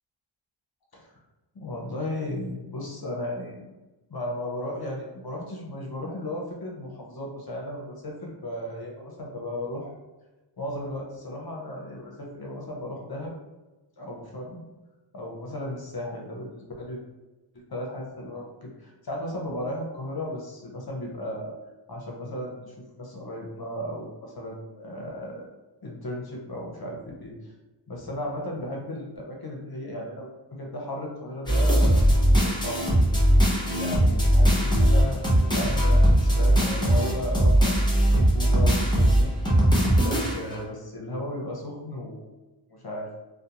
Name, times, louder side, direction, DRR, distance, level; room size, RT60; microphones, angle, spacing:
voice 1, 1.5-3.5 4.1-9.9 10.6-13.4 14.0-14.6 15.1-17.0 17.7-21.6 21.9-25.4 25.8-27.3 27.9-32.1 32.4-33.2 33.7-35.2 35.5-37.7 38.0-39.3 40.0-42.2 42.7-43.1, left 1 dB, 50° left, -1 dB, 0.7 m, -35 dB
sound 1, 31.5-40.6, right 1 dB, 10° left, 0.8 m, -20 dB
2.5 x 2.1 x 2.8 m, 1.1 s
wide cardioid pair, 50°, 48 cm